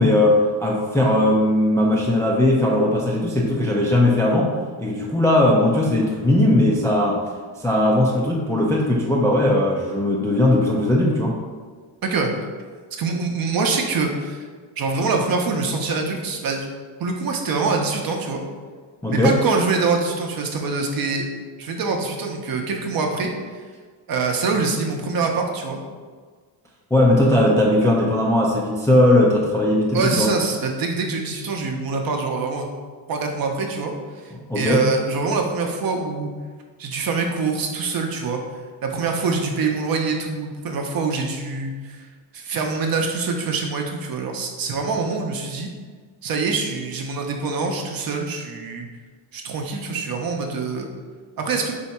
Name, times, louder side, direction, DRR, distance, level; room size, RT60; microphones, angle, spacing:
voice 1, 0.0-4.5 4.8-7.2 7.6-11.3 19.0-19.4 26.9-30.3 34.3-34.8, left 1 dB, 5° left, -3 dB, 0.3 m, -18 dB
voice 2, 12.0-12.3 13.0-14.5 14.8-16.7 17.0-18.4 19.1-21.3 21.6-23.7 24.1-25.8 29.9-32.7 33.1-36.3 36.8-38.4 38.8-45.7 46.2-48.9 49.3-50.9 51.4-51.7, right 4 dB, 45° right, 2 dB, 0.7 m, -24 dB
3.4 x 2.8 x 4.2 m, 1.5 s
cardioid pair, 105°, 48 cm